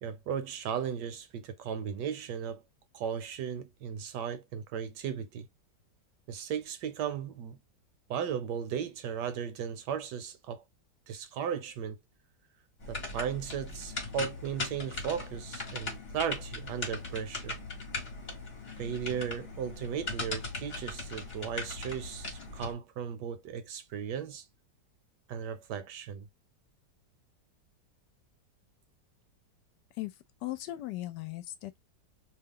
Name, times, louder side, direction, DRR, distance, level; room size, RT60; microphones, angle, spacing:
voice 1, 0.0-2.6 2.9-5.5 6.3-7.6 8.1-10.6 11.1-12.0 12.9-17.6 18.8-24.4 25.3-26.3, right 8 dB, 75° right, 1.2 m, -36 dB
sound 1, 12.8-22.7, left 3 dB, 40° left, 1.1 m, -39 dB
voice 2, 29.9-31.8, left 16 dB, 75° left, 1.2 m, -38 dB
2.9 x 2.3 x 3.5 m
omnidirectional pair, 1.9 m